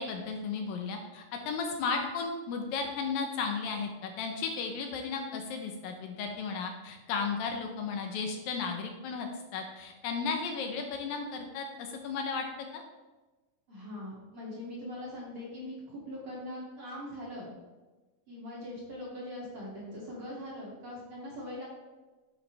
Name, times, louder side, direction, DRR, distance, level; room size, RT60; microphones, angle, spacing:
voice 1, 0.0-12.5 12.7-12.8, left 5 dB, 75° left, 3 dB, 2.4 m, -34 dB
voice 2, 13.7-17.5 18.3-21.7, left 1 dB, 40° right, -6 dB, 3.0 m, -41 dB
9.8 x 8.5 x 3.4 m, 1.2 s
omnidirectional pair, 4.3 m